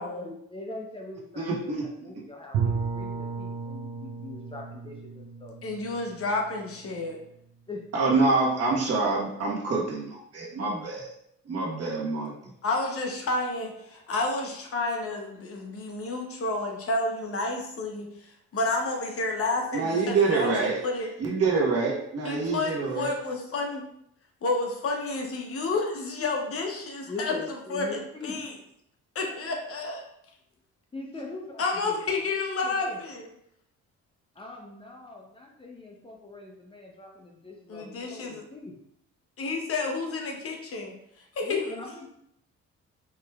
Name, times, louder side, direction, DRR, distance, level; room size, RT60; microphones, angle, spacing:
voice 1, 0.0-5.5 7.7-7.8 8.1-8.2 27.1-28.4 30.9-32.0 32.2-33.0 34.3-38.8 41.4-42.1, left 2 dB, 20° left, -1 dB, 0.6 m, -41 dB
voice 2, 1.4-2.1 7.9-11.1 11.4-12.3 19.7-20.8 21.2-23.1, right 3 dB, 55° right, -3 dB, 1.2 m, -26 dB
Bowed string instrument, 2.5-7.3, right 6 dB, 70° right, 0.7 m, -34 dB
voice 3, 5.6-7.2 12.6-18.1 18.5-21.1 22.2-23.8 24.4-27.3 27.7-28.5 29.1-30.0 31.6-33.3 37.7-38.4 39.4-40.9 41.3-41.6, left 3 dB, 50° left, 1 dB, 0.9 m, -30 dB
4.7 x 3.0 x 2.3 m, 0.75 s
cardioid pair, 90°, 30 cm